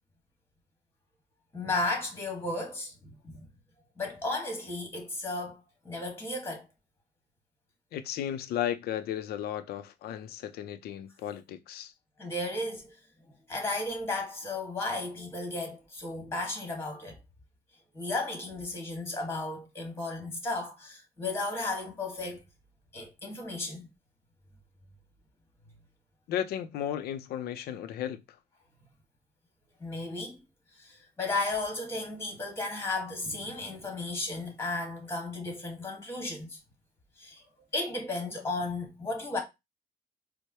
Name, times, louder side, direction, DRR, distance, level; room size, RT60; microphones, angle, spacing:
voice 1, 1.5-3.4 4.0-6.6 12.2-12.9 13.5-17.2 17.9-22.4 22.9-23.9 29.8-30.4 30.8-36.6 37.2-37.4 37.7-39.4, left 2 dB, 15° left, 1.5 m, -34 dB
voice 2, 7.9-11.9 26.3-28.2, left 10 dB, 70° left, 0.5 m, -34 dB
4.5 x 2.1 x 2.8 m
cardioid pair, 110°, 17 cm